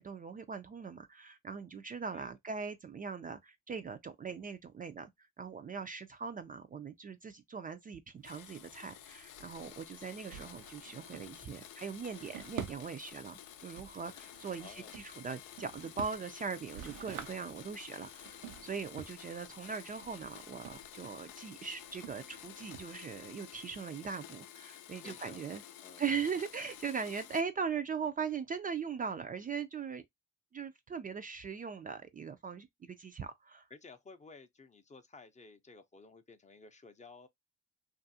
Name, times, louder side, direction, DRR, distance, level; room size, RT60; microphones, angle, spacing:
voice 1, 0.0-5.1 5.4-25.6 26.0-30.0 30.5-33.7, right 6 dB, 30° right, 0.4 m, -40 dB
Domestic sounds home sounds, 8.2-27.4, left 11 dB, 85° left, 0.5 m, -52 dB
Drawer open or close, 8.2-23.4, right 10 dB, 90° right, 0.5 m, -50 dB
voice 2, 14.6-14.9 25.0-25.5 25.8-26.0 33.7-37.3, left 4 dB, 25° left, 0.5 m, -54 dB
2.6 x 2.4 x 2.6 m
cardioid pair, 75°, 30 cm